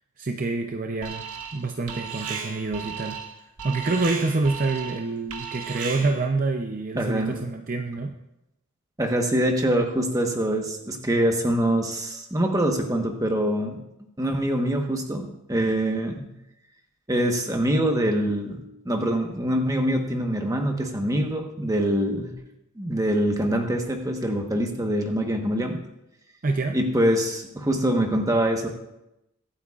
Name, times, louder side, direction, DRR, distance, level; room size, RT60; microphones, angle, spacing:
voice 1, 0.2-1.2 1.5-3.2 3.6-8.2 26.4-26.8, right 3 dB, 40° right, 4 dB, 0.6 m, -27 dB
Alarm, 1.0-1.6 1.9-6.3, right 6 dB, 85° right, 1.5 m, -35 dB
voice 2, 6.9-7.4 9.0-13.8 14.2-16.2 17.1-18.6 18.8-22.3 22.8-25.8 26.7-28.7, right 1 dB, 15° right, 3 dB, 1.2 m, -24 dB
23.5 x 8.6 x 2.5 m, 0.89 s
head